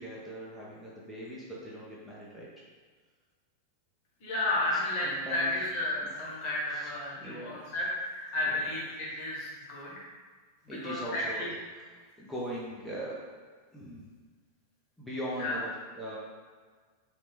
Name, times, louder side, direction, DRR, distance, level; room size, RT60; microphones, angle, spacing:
voice 1, 0.0-2.5 5.0-5.7 6.7-6.9 7.2-7.6 8.5-8.7 10.7-11.8 12.2-13.2 13.7-14.1 15.0-16.2, right 1 dB, ahead, -7 dB, 0.7 m, -40 dB
voice 2, 4.2-10.0 10.7-11.5 15.4-15.5, left 1 dB, 45° left, -5 dB, 1.1 m, -32 dB
3.1 x 3.0 x 3.1 m, 1.5 s
figure-of-eight pair, 90°, 0 cm